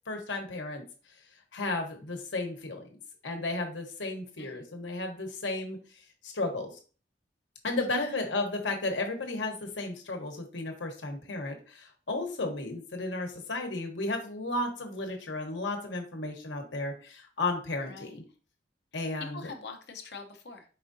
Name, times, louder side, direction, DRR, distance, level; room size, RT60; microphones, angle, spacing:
voice 1, 0.1-0.8 1.5-2.8 3.2-5.8 6.2-6.7 7.6-18.2 18.9-19.5, left 2 dB, 80° left, 3 dB, 1.0 m, -33 dB
voice 2, 17.9-18.2 19.3-20.6, left 4 dB, 65° left, 4 dB, 0.7 m, -44 dB
4.9 x 3.6 x 2.6 m, 0.38 s
head